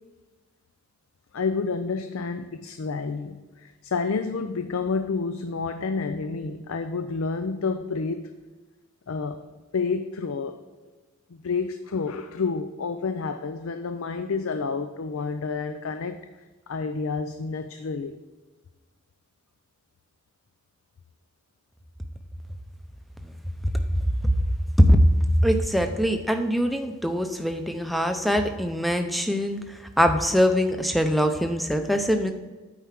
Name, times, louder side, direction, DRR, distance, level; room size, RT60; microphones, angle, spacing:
voice 1, 1.3-8.3 9.1-9.4 9.7-10.6 11.3-16.3 16.7-18.1, left 4 dB, 80° left, 9 dB, 0.5 m, -29 dB
voice 2, 24.8-25.1 25.4-29.6 30.0-32.3, equal, ahead, 6 dB, 0.5 m, -22 dB
9.0 x 4.8 x 5.8 m, 1.3 s
head